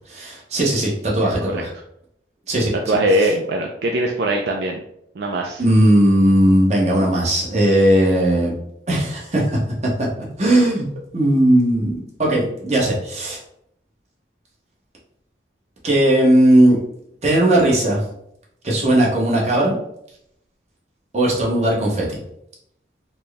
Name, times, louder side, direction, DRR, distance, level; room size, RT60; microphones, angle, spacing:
voice 1, 0.1-1.7 2.5-2.7 3.2-3.3 5.6-8.5 8.9-9.6 10.0-10.1 10.4-10.8 11.1-13.4 15.8-16.8 17.2-18.0 18.6-19.8 21.1-22.2, right 1 dB, 35° right, -4 dB, 0.9 m, -17 dB
voice 2, 1.2-1.6 2.9-4.8 5.2-5.6, right 1 dB, 65° right, 1 dB, 0.4 m, -21 dB
4.2 x 2.1 x 3.3 m, 0.75 s
head